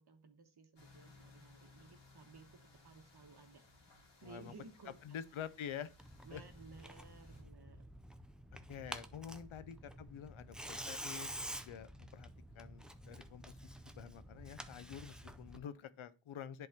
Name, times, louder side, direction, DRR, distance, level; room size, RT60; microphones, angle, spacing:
voice 1, 0.0-3.6 4.2-5.2 6.2-7.9 9.7-9.8, right 4 dB, 50° right, 1.2 m, -57 dB
sound 1, 0.8-7.4, left 3 dB, 60° left, 2.0 m, -63 dB
voice 2, 4.2-4.5 5.0-5.9 6.3-6.4 8.5-11.3 11.6-12.3 12.5-16.7, left 8 dB, 80° left, 0.6 m, -48 dB
Tearing, 6.0-15.6, equal, ahead, 0.4 m, -49 dB
10.5 x 3.9 x 2.8 m
wide cardioid pair, 95°, 48 cm